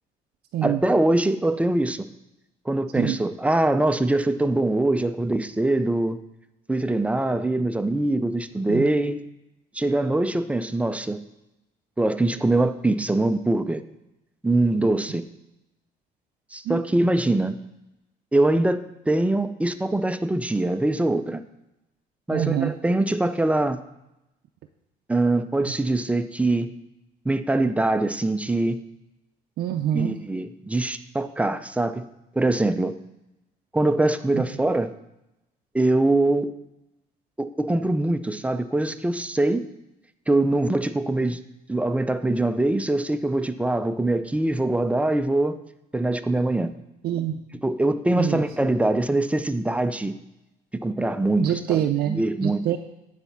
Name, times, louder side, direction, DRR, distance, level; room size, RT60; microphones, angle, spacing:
voice 1, 0.6-2.1 2.7-6.2 6.7-9.2 9.7-11.2 12.0-13.8 14.4-15.2 16.5-17.5 18.3-21.4 22.3-23.8 25.1-26.7 27.3-28.8 29.9-32.0 32.4-32.9 33.7-34.9 35.7-36.5 37.4-39.6 40.3-41.4 41.7-45.6 45.9-46.7 47.6-50.1 50.8-52.6, right 2 dB, 10° right, 10 dB, 0.4 m, -23 dB
voice 2, 22.3-22.7 29.6-30.2 34.3-34.4 47.0-47.4 48.1-48.4 51.4-52.8, right 11 dB, 65° right, 5 dB, 0.5 m, -25 dB
9.8 x 4.1 x 5.8 m, 0.92 s
cardioid pair, 110°, 17 cm